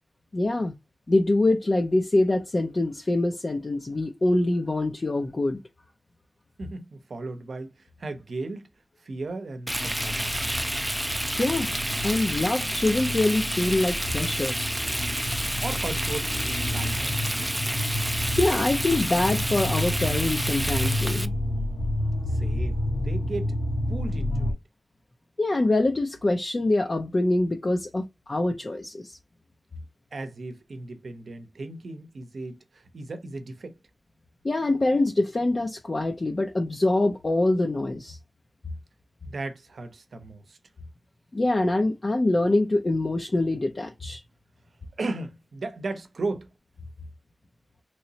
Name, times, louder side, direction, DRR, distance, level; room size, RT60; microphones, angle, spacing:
voice 1, 0.3-0.7 1.1-5.6 11.4-11.7 12.0-14.6 18.3-21.3 25.4-29.2 34.4-38.2 41.3-44.2, left 2 dB, 40° left, 0.5 m, -24 dB
voice 2, 6.6-8.7 9.0-10.3 15.6-17.6 22.3-23.6 23.9-24.5 30.1-33.8 39.2-40.6 45.0-46.5, right 3 dB, 75° right, 0.7 m, -36 dB
sound 1, 9.7-24.5, left 1 dB, 65° left, 1.0 m, -30 dB
Frying (food), 9.7-21.3, right 1 dB, 10° right, 0.4 m, -30 dB
3.1 x 3.0 x 2.8 m
wide cardioid pair, 65°, 0 cm